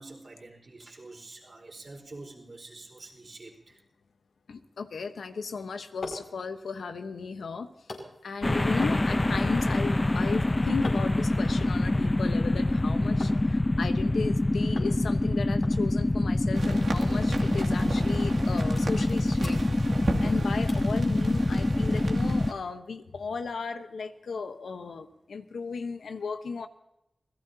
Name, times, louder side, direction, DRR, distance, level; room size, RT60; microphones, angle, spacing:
voice 1, 0.0-3.8, right 2 dB, 55° right, 1 dB, 4.6 m, -47 dB
voice 2, 4.5-7.7 8.2-19.6 20.2-26.7, left 5 dB, 90° left, 7 dB, 1.1 m, -35 dB
sound 1, 5.8-13.4 13.7-14.4 14.8-15.0 15.2-15.3 15.6-16.9 17.2-17.4 18.0-18.1 18.5-19.1 19.4-20.3 20.7-21.0 21.5-21.6, left 2 dB, 75° left, 5.5 m, -45 dB
sound 2, 8.4-22.5, left 2 dB, 30° left, 0.7 m, -25 dB
sound 3, 16.5-22.5, right 3 dB, 80° right, 2.4 m, -37 dB
27.5 x 17.0 x 2.8 m, 0.87 s
cardioid pair, 45°, 0 cm